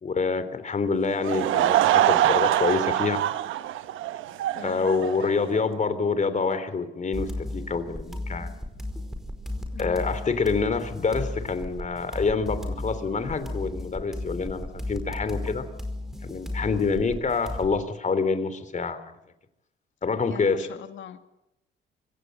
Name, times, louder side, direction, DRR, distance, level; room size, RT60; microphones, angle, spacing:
voice 1, 0.0-3.2 4.6-8.5 9.8-15.7 16.3-19.0 20.0-20.7, left 4 dB, 35° left, 12 dB, 3.3 m, -27 dB
Laughter / Crowd, 1.1-5.6, right 12 dB, 85° right, 1.1 m, -24 dB
voice 2, 4.5-4.9 9.7-10.1 20.3-21.2, left 9 dB, 70° left, 8 dB, 2.5 m, -41 dB
sound 1, 7.1-17.8, left 1 dB, ahead, 4.9 m, -35 dB
26.0 x 16.5 x 9.1 m, 0.88 s
cardioid pair, 90°, 20 cm